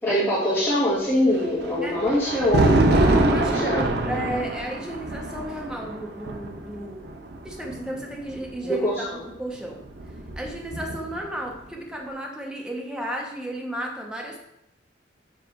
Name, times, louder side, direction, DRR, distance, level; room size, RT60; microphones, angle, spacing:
voice 1, 0.0-2.9 3.4-3.8 8.6-9.2, equal, 15° left, -12 dB, 1.9 m, -23 dB
Thunder, 1.3-8.5 9.6-11.3, right 2 dB, 65° right, 0.7 m, -25 dB
voice 2, 2.9-7.1 7.4-9.8 10.4-14.4, right 1 dB, 5° right, 0 dB, 0.9 m, -33 dB
7.3 x 3.3 x 4.6 m, 0.80 s
head